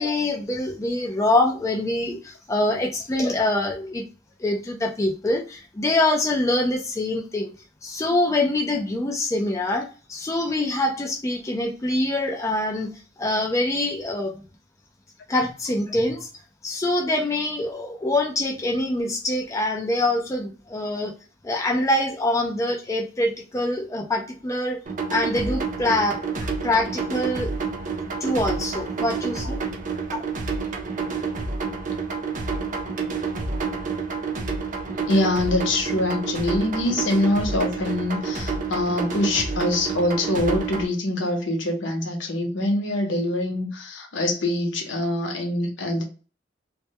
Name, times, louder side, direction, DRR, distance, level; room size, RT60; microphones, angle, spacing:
voice 1, 0.0-4.0 4.4-7.5 7.8-12.9 13.2-14.4 15.3-16.3 16.6-21.1 21.4-24.8 25.1-26.2 26.6-27.6 28.2-29.6 30.1-30.2, left 1 dB, 15° left, 0.4 m, -24 dB
sound 1, 24.9-40.9, right 4 dB, 45° right, 0.5 m, -29 dB
voice 2, 35.1-46.0, left 1 dB, 70° left, 0.8 m, -24 dB
2.2 x 2.1 x 2.7 m
head